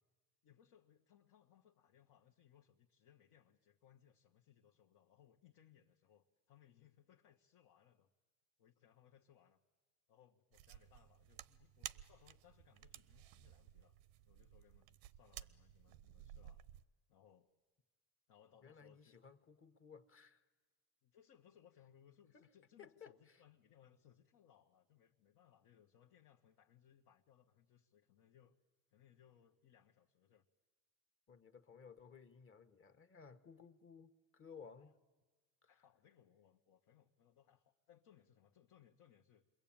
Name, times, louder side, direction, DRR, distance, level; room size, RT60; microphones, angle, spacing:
voice 1, 0.4-8.1 8.6-9.6 10.1-14.0 14.2-16.7 17.1-17.5 18.3-19.1 21.0-28.6 28.9-30.4 34.8-34.9 35.6-39.4, left 9 dB, 65° left, 1.3 m, -68 dB
sound 1, 10.5-16.8, right 13 dB, 85° right, 0.7 m, -55 dB
voice 2, 18.6-20.4 22.3-22.5 22.8-23.4 31.3-35.0 35.6-35.8, left 6 dB, 35° left, 1.4 m, -58 dB
27.5 x 22.0 x 8.9 m
supercardioid pair, 90°, 38 cm